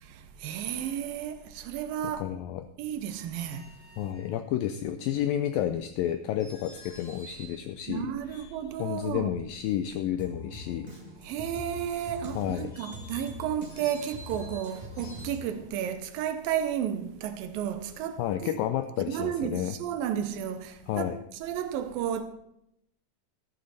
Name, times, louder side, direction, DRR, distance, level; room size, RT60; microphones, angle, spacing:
voice 1, 0.0-2.2 2.8-3.7 7.9-9.3 11.2-18.6 19.1-21.1 21.4-22.2, right 9 dB, 75° right, 2.4 m, -33 dB
voice 2, 2.2-2.6 4.0-8.1 8.8-10.9 12.4-12.7 18.2-19.8 20.9-21.2, left 11 dB, 90° left, 2.0 m, -31 dB
sound 1, 3.4-4.4 6.4-7.6 8.2-8.9 12.5-15.3, right 1 dB, 30° left, 1.0 m, -50 dB
Drum kit, 10.2-15.7, left 2 dB, 40° right, 0.5 m, -43 dB
14.0 x 11.0 x 4.1 m
omnidirectional pair, 4.7 m